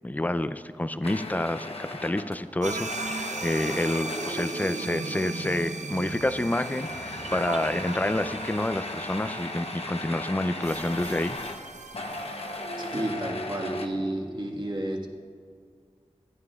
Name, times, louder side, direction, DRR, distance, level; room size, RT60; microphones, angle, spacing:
voice 1, 0.0-11.4, left 1 dB, 15° left, 12 dB, 0.4 m, -28 dB
sound 1, 1.0-4.5 5.5-5.9 6.2-13.9, left 2 dB, 55° left, 0.9 m, -37 dB
sound 2, 2.6-13.1, right 3 dB, 80° right, 0.6 m, -37 dB
voice 2, 12.9-15.1, right 1 dB, 40° right, -1 dB, 1.6 m, -31 dB
16.5 x 9.6 x 2.4 m, 2.1 s
wide cardioid pair, 50°, 12 cm